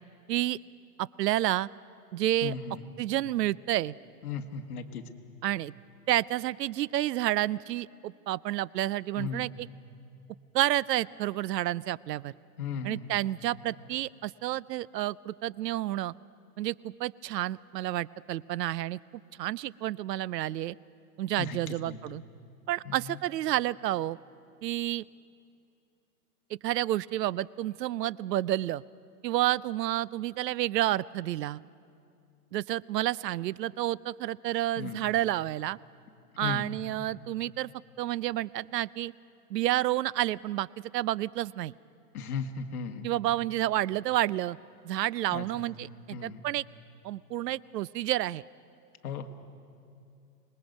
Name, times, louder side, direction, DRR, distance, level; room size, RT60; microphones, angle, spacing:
voice 1, 1.0-1.7 2.1-2.5 3.0-4.0 5.4-5.7 6.1-9.7 10.5-12.3 12.8-16.1 16.6-19.0 19.3-20.8 21.2-22.2 22.7-24.2 24.6-25.0 26.5-28.8 29.2-31.6 32.5-35.8 36.4-37.7 38.0-39.1 39.5-41.7 43.0-44.6 44.8-46.6 47.0-48.4, right 14 dB, 80° right, 23 dB, 0.5 m, -30 dB
voice 2, 2.4-2.8 4.2-5.0 9.2-9.5 12.6-13.1 21.4-22.0 22.8-23.2 34.8-35.0 36.4-36.7 42.1-43.1 45.3-46.4 49.0-49.3, left 6 dB, 65° left, 6 dB, 1.4 m, -36 dB
26.0 x 20.0 x 5.3 m, 2.5 s
hypercardioid pair, 180°, 48 cm